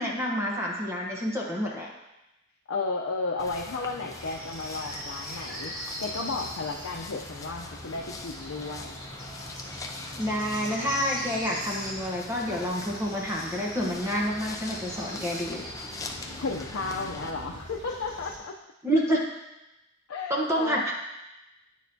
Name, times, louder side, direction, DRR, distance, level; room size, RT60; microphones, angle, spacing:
voice 1, 0.0-1.9 10.2-15.6 18.8-19.2 20.3-20.9, equal, 15° right, -2 dB, 1.0 m, -28 dB
voice 2, 2.7-5.7 6.0-8.9 16.4-18.5 20.1-20.9, left 3 dB, 85° left, 0 dB, 0.6 m, -33 dB
sound 1, 3.4-17.3, left 2 dB, 15° left, 0.4 m, -42 dB
sound 2, 4.1-18.4, equal, 70° right, 2.7 m, -41 dB
9.2 x 6.4 x 2.7 m, 0.95 s
head